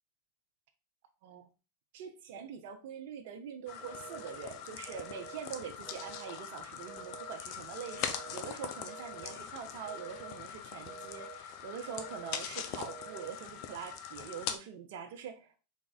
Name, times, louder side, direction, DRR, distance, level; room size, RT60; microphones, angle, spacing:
voice 1, 1.9-15.6, right 7 dB, 65° right, 6 dB, 0.5 m, -44 dB
sound 1, 3.7-14.6, left 8 dB, 55° left, 0.5 m, -42 dB
sound 2, 3.9-4.4 4.9-5.4 5.9-6.4 6.9-7.4 7.9-8.4 8.9-9.4 9.9-10.4 10.9-11.4 11.9-12.4 12.9-13.4, right 6 dB, 40° right, 0.9 m, -49 dB
3.5 x 2.4 x 3.9 m, 0.34 s
hypercardioid pair, 100°, 0 cm